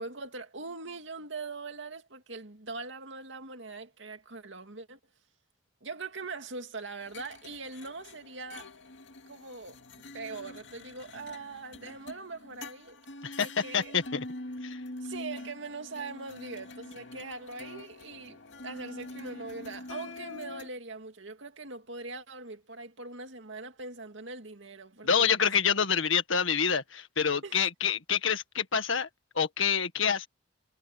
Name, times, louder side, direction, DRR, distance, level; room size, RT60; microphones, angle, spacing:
voice 1, 0.0-5.0 5.8-8.7 9.3-9.8 10.1-13.0 13.4-14.0 15.0-25.3 27.4-27.7, right 3 dB, 65° right, 2.4 m, -42 dB
sound 1, 7.0-20.7, left 2 dB, 60° left, 2.6 m, -45 dB
voice 2, 13.7-14.2 14.6-14.8 25.0-29.1 29.4-30.3, left 7 dB, 75° left, 1.7 m, -27 dB
head